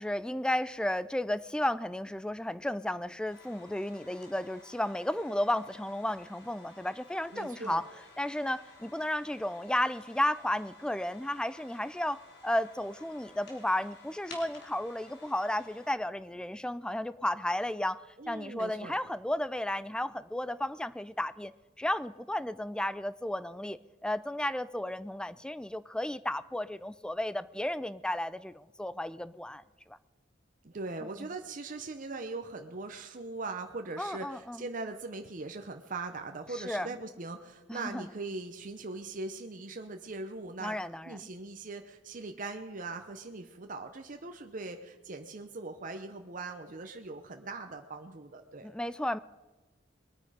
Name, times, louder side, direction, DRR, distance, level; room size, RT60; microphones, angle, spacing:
voice 1, 0.0-7.9 8.2-18.0 18.3-21.5 21.8-30.0 31.0-31.3 34.0-34.7 36.5-36.9 37.7-38.1 40.6-41.2 48.6-49.2, left 1 dB, 5° left, 16 dB, 0.3 m, -33 dB
sound 1, 3.3-15.9, left 3 dB, 65° left, 3.3 m, -54 dB
voice 2, 7.3-7.8 18.2-18.9 30.6-40.8 41.1-48.7, right 3 dB, 45° right, 5 dB, 0.8 m, -40 dB
21.5 x 9.3 x 5.0 m, 1.2 s
head